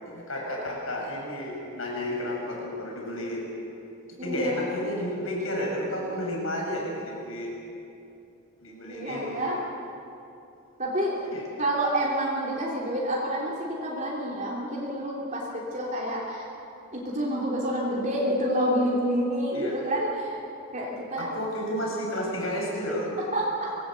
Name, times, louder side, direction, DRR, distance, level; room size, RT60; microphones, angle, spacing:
voice 1, 0.0-3.5 4.2-7.5 8.6-9.4 11.3-11.4 19.5-19.8 21.2-23.1, equal, 75° left, -1 dB, 7.5 m, -32 dB
voice 2, 4.2-4.6 8.9-9.6 10.8-11.1 11.6-16.5 16.9-20.4 20.7-21.3 23.3-23.5, right 1 dB, 35° right, -4 dB, 3.4 m, -28 dB
25.5 x 19.0 x 8.0 m, 2.8 s
head